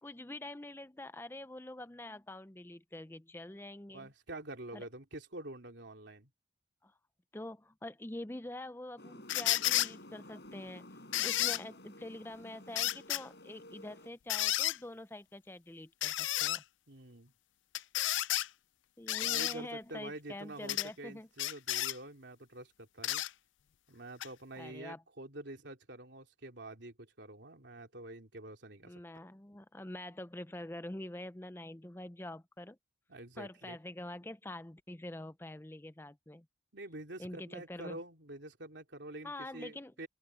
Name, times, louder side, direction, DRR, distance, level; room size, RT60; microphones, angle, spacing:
voice 1, 0.0-4.1 4.7-4.8 6.8-6.9 7.3-10.9 11.2-16.6 19.0-21.3 24.6-25.0 28.8-32.8 33.4-36.5 37.2-38.0 39.2-39.9, left 1 dB, 10° left, 0.5 m, -45 dB
voice 2, 3.9-6.3 16.9-17.3 19.2-23.2 23.9-29.0 33.1-33.8 36.7-40.1, right 1 dB, 70° right, 2.9 m, -47 dB
sound 1, 9.0-14.1, left 1 dB, 65° left, 4.7 m, -53 dB
sound 2, 9.3-9.9 11.1-11.6 12.7-13.2 14.3-14.8 16.0-16.6 17.7-18.5 19.1-19.5 20.7-20.9 21.4-22.0 23.0-23.3 24.2-24.3, left 14 dB, 80° left, 0.5 m, -31 dB
open air
head